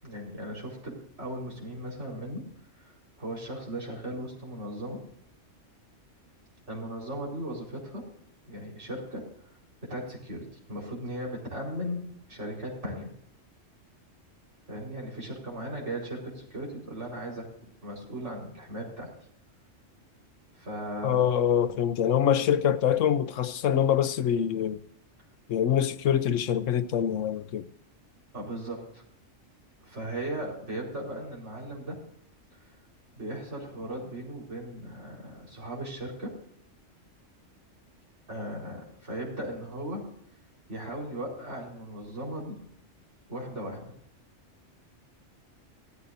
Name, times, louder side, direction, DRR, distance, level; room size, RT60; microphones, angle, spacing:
voice 1, 0.0-2.5 2.8-5.0 6.7-8.0 8.5-9.2 9.8-13.1 14.7-17.5 17.8-19.1 20.5-21.2 28.3-29.0 29.8-32.0 32.5-32.7 33.2-36.3 38.3-40.0 40.7-42.6 43.3-43.9, right 1 dB, 65° right, 4.8 m, -37 dB
voice 2, 21.0-24.8 25.5-27.6, left 9 dB, 80° left, 1.0 m, -25 dB
16.5 x 13.5 x 2.6 m
omnidirectional pair, 1.3 m